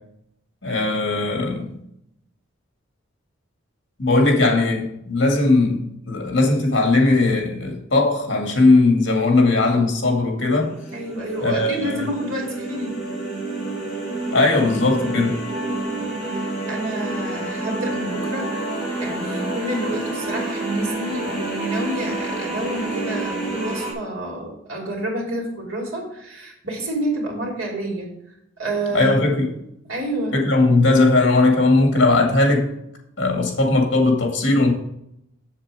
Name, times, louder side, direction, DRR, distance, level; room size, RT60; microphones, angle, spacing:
voice 1, 0.6-1.7 4.0-10.7 11.4-12.0 14.3-15.4 28.9-29.5 30.3-32.7 33.2-34.7, left 2 dB, 65° left, 1 dB, 2.1 m, -18 dB
sound 1, 10.6-23.9, right 2 dB, 5° left, 3.4 m, -28 dB
voice 2, 10.9-13.0 15.6-18.5 19.0-28.1 28.6-29.1 29.8-30.4, right 1 dB, 85° right, -2 dB, 3.0 m, -29 dB
7.5 x 7.4 x 4.9 m, 0.79 s
head